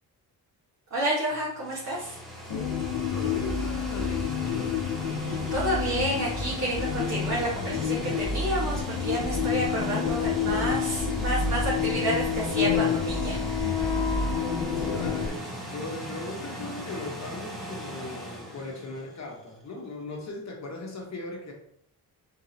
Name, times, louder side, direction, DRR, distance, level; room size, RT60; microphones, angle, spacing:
voice 1, 0.9-2.2 5.2-13.4, right 1 dB, 45° right, -7 dB, 1.5 m, -30 dB
sound 1, 1.3-19.4, equal, ahead, 1.0 m, -39 dB
sound 2, 2.5-15.3, left 6 dB, 65° left, 0.8 m, -28 dB
voice 2, 3.1-4.7 14.8-21.5, left 2 dB, 40° left, 0 dB, 1.2 m, -38 dB
3.8 x 3.7 x 2.9 m, 0.66 s
wide cardioid pair, 120°, 40 cm